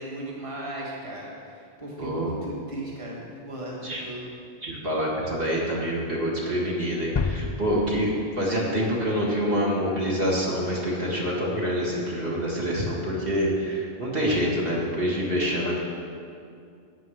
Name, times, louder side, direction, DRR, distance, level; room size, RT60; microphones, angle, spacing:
voice 1, 0.0-4.3, right 1 dB, 30° right, -4 dB, 1.7 m, -36 dB
voice 2, 2.0-2.3 3.8-4.0 4.6-15.8, equal, 65° right, -4 dB, 2.1 m, -26 dB
sound 1, 7.2-9.8, left 5 dB, 35° left, 0.4 m, -32 dB
9.6 x 8.0 x 6.3 m, 2.4 s
omnidirectional pair, 1.0 m